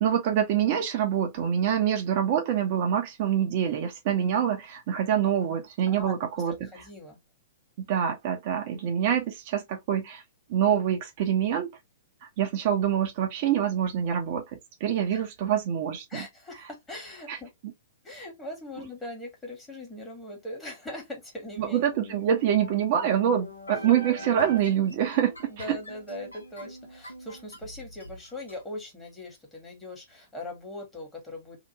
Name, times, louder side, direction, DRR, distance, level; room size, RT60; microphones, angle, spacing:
voice 1, 0.0-6.7 7.8-10.2 10.5-11.7 12.4-14.4 14.8-16.3 17.3-17.4 21.6-25.8, right 9 dB, 45° right, 0.7 m, -25 dB
voice 2, 6.4-7.2 15.1-15.2 16.1-17.5 18.0-21.9 25.5-31.6, left 1 dB, 10° left, 1.5 m, -40 dB
sound 1, 21.8-28.6, equal, 85° left, 0.9 m, -42 dB
2.8 x 2.5 x 2.9 m
figure-of-eight pair, 110°, 0 cm